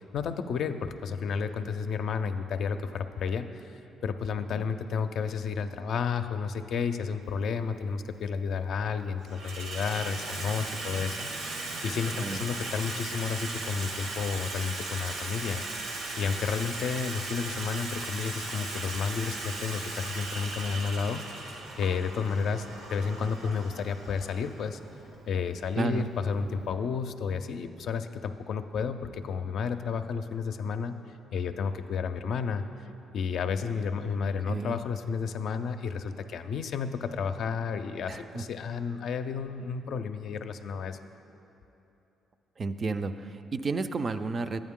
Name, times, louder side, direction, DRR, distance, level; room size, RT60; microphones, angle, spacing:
voice 1, 0.1-3.7 4.0-11.3 11.8-15.6 16.2-24.8 25.3-31.0 31.3-32.6 33.1-41.0, left 6 dB, 70° left, 8 dB, 0.4 m, -31 dB
Water tap faucet / Sink (filling or washing), 7.3-7.5 8.4-8.8 9.1-26.7, right 2 dB, 90° right, 1.2 m, -38 dB
voice 2, 25.8-26.1 34.5-34.8 38.1-38.4 42.6-44.6, right 3 dB, 40° right, 10 dB, 0.4 m, -31 dB
11.0 x 8.9 x 3.7 m, 2.9 s
cardioid pair, 90°, 0 cm